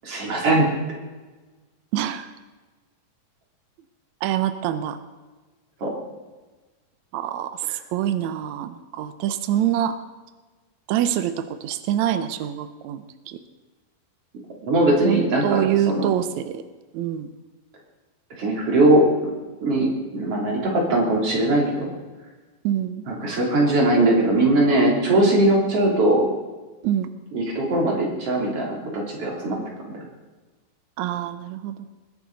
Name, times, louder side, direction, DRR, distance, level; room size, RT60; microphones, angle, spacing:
voice 1, 0.0-0.7 5.8-5.9 14.6-16.1 18.4-19.0 19.6-21.9 23.1-26.3 27.3-29.6, right 1 dB, 40° right, -2 dB, 3.9 m, -20 dB
voice 2, 1.9-2.3 4.2-5.0 7.1-10.0 10.9-13.4 15.0-16.6 16.9-17.3 22.6-23.0 26.8-27.1 31.0-31.9, right 11 dB, 85° right, 11 dB, 1.6 m, -25 dB
20.5 x 11.5 x 4.0 m, 1.3 s
omnidirectional pair, 4.2 m